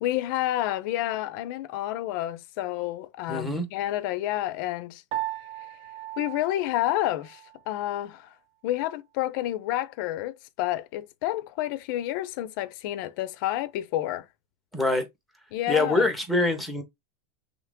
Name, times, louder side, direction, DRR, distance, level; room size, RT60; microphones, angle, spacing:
voice 1, 0.0-5.0 6.2-8.3 8.6-14.3 15.5-16.1, left 14 dB, 50° left, 0.6 m, -29 dB
voice 2, 3.3-3.7 14.7-15.1 15.7-16.8, left 2 dB, ahead, 1.0 m, -24 dB
Piano, 5.1-7.6, right 14 dB, 35° right, 1.0 m, -37 dB
5.8 x 2.0 x 3.6 m
supercardioid pair, 160°, 14 cm